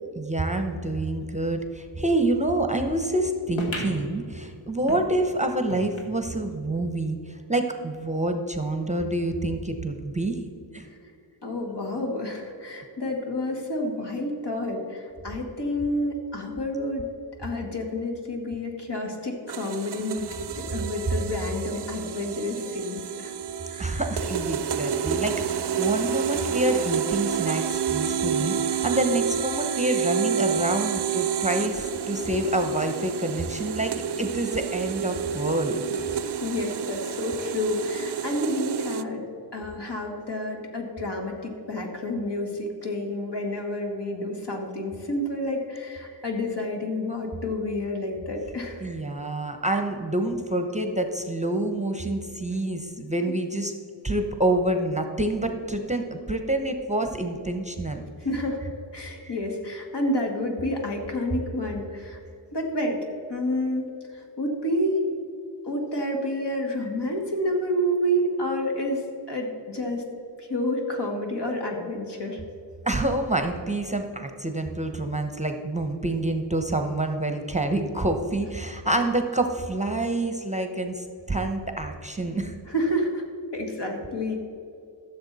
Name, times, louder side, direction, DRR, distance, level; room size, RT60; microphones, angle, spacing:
voice 1, 0.2-7.2 7.5-10.4 10.7-10.9 23.8-33.9 34.2-35.8 48.8-53.7 54.0-58.0 59.2-59.3 72.8-82.5, right 1 dB, 15° right, 5 dB, 0.8 m, -27 dB
sound 1, 3.6-6.5 7.0-7.1 7.3-7.4 8.2-8.3, left 1 dB, 80° left, 1.5 m, -37 dB
voice 2, 11.4-17.1 17.4-23.3 23.7-24.0 36.1-39.2 39.5-48.9 58.2-58.6 58.9-62.2 62.5-63.0 63.3-63.9 64.4-65.1 65.6-69.0 69.3-70.0 70.4-72.4 82.7-83.2 83.5-84.4, left 1 dB, 60° left, 1 dB, 2.0 m, -29 dB
sound 2, 19.5-39.0, right 7 dB, 60° right, 0.5 m, -29 dB
14.5 x 6.9 x 4.1 m, 2.5 s
wide cardioid pair, 80°, 46 cm